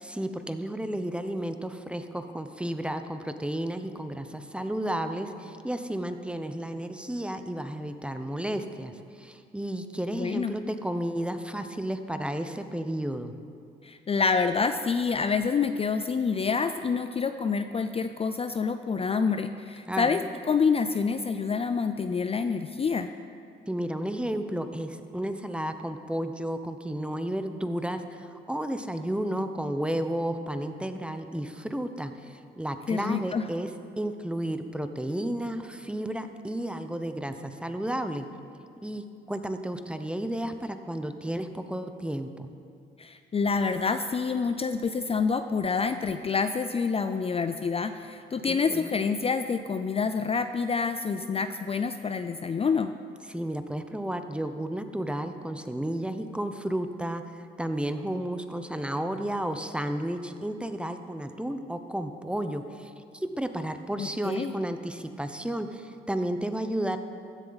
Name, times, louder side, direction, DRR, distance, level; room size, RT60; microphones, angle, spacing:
voice 1, 0.0-8.9 9.2-13.3 19.9-20.2 23.7-33.7 34.0-38.2 38.8-42.5 48.5-48.9 53.3-67.0, right 1 dB, 5° right, 8 dB, 0.8 m, -32 dB
voice 2, 10.1-10.5 13.8-23.1 32.9-33.5 43.0-52.9 64.0-64.5, left 5 dB, 30° left, 9 dB, 0.5 m, -27 dB
15.5 x 10.5 x 4.1 m, 2.5 s
cardioid pair, 90°, 20 cm